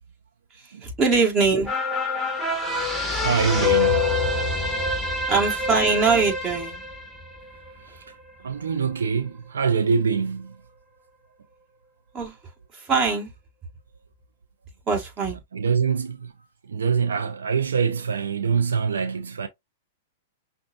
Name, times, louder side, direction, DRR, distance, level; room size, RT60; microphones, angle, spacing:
voice 1, 0.8-1.7 5.3-6.8 12.1-12.4 12.7-13.3 14.9-15.4, right 4 dB, 25° right, 1.9 m, -22 dB
sound 1, 1.7-8.3 8.7-8.8, left 3 dB, 5° right, 1.3 m, -26 dB
voice 2, 3.1-4.1 4.6-4.7 8.4-10.5 15.5-16.3 16.7-19.5, right 6 dB, 85° right, 0.6 m, -24 dB
6.2 x 2.4 x 2.6 m
hypercardioid pair, 125°, 0 cm